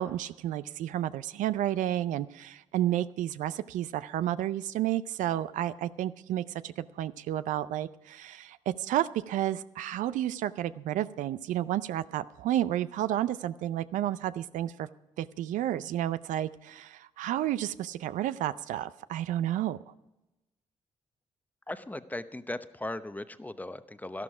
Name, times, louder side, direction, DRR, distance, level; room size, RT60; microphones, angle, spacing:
voice 1, 0.0-14.9 15.2-19.8, right 12 dB, 75° right, 15 dB, 0.5 m, -31 dB
voice 2, 21.7-24.2, left 1 dB, 10° left, 12 dB, 0.8 m, -38 dB
12.0 x 11.5 x 4.9 m, 0.97 s
supercardioid pair, 55°, 13 cm